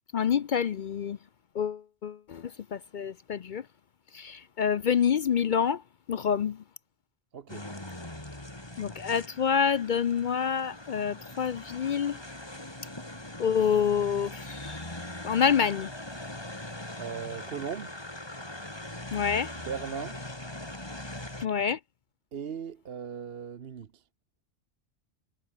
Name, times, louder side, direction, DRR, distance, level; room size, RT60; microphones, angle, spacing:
voice 1, 0.1-1.2 1.5-3.6 4.1-5.8 6.1-6.6 8.8-12.2 13.4-14.8 15.2-15.9 19.1-19.5 21.4-21.8, left 7 dB, 55° left, 0.6 m, -27 dB
voice 2, 7.3-7.7 17.0-18.0 19.7-20.2 22.3-24.1, right 7 dB, 55° right, 1.1 m, -38 dB
sound 1, 7.5-21.5, left 1 dB, 20° left, 3.1 m, -41 dB
omnidirectional pair, 1.3 m